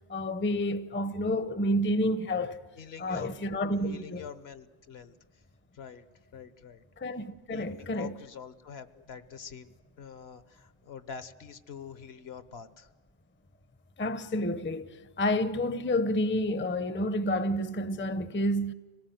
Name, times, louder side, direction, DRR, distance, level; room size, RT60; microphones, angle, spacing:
voice 1, 0.1-2.6 3.0-4.2 7.0-8.1 14.0-18.7, left 1 dB, 15° left, 0.5 m, -29 dB
voice 2, 2.8-3.3 3.7-5.1 5.7-6.1 6.3-6.8 7.5-12.9, left 7 dB, 70° left, 1.2 m, -45 dB
25.0 x 18.0 x 9.2 m
omnidirectional pair, 1.1 m